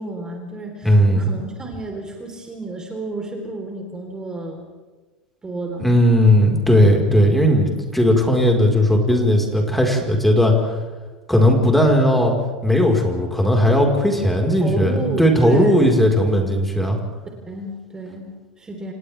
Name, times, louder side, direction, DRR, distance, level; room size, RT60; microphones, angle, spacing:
voice 1, 0.0-4.6 5.4-6.0 14.6-15.8 17.5-18.9, right 2 dB, 15° right, 1 dB, 4.2 m, -31 dB
voice 2, 0.8-1.3 5.8-10.7 11.3-12.3 12.6-17.0, equal, 5° left, 1 dB, 5.0 m, -16 dB
30.0 x 28.0 x 3.7 m, 1.3 s
figure-of-eight pair, 80°, 4 cm